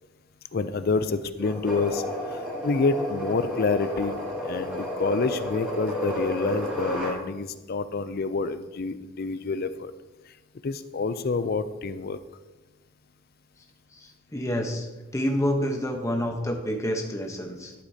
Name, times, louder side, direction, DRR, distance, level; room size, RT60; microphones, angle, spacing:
voice 1, 0.5-2.0 2.3-4.2 4.4-9.9 10.3-10.4 10.6-12.2, left 4 dB, 45° left, 12 dB, 0.4 m, -28 dB
sound 1, 1.4-7.2, left 1 dB, 5° right, 3.0 m, -32 dB
voice 2, 13.9-17.7, equal, 15° left, 3 dB, 0.9 m, -28 dB
11.5 x 8.1 x 2.8 m, 1.1 s
head